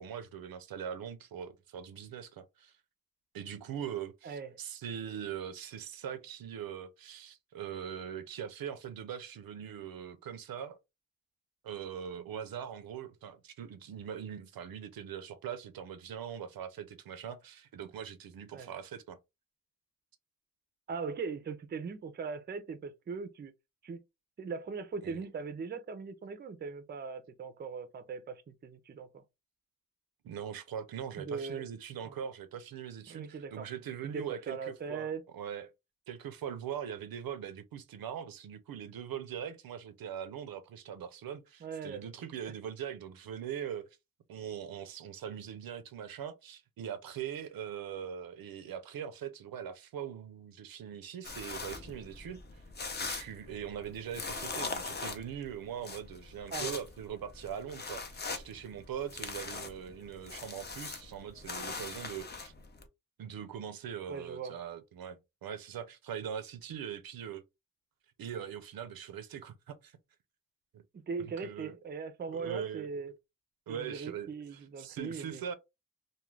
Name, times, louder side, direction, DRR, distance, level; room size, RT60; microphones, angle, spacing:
voice 1, 0.0-2.7 3.3-10.8 11.6-19.2 25.0-25.2 30.2-35.1 35.3-35.7 36.1-44.0 44.3-52.4 53.0-62.5 63.2-67.4 68.2-70.0 70.7-70.8 71.4-71.7 72.3-72.9 73.7-75.5, right 8 dB, 90° right, 0.5 m, -41 dB
voice 2, 20.9-23.5 23.8-24.0 24.4-29.2 31.2-31.6 32.0-32.2 33.1-33.7 34.0-35.3 41.6-42.0 56.5-56.7 64.1-64.6 70.9-73.1 73.7-75.5, right 5 dB, 30° right, 0.4 m, -40 dB
sound 1, 51.2-62.8, left 4 dB, 30° left, 0.5 m, -41 dB
2.3 x 2.2 x 3.1 m
wide cardioid pair, 105°, 34 cm